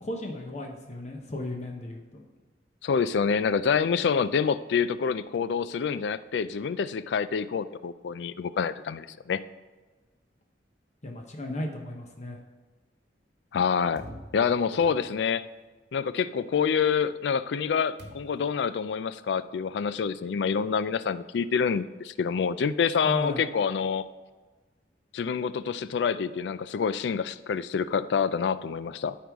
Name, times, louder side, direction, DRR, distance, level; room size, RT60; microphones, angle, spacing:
voice 1, 0.0-2.2 11.0-12.4 23.0-23.4, left 1 dB, 40° left, 1 dB, 0.9 m, -35 dB
voice 2, 2.8-9.4 13.5-14.1 14.3-15.4 15.9-24.0 25.1-29.2, left 6 dB, 70° left, 15 dB, 0.3 m, -27 dB
sound 1, 14.0-15.4 18.0-18.6, equal, 90° right, 1.3 m, -46 dB
13.0 x 4.7 x 3.5 m, 1.3 s
head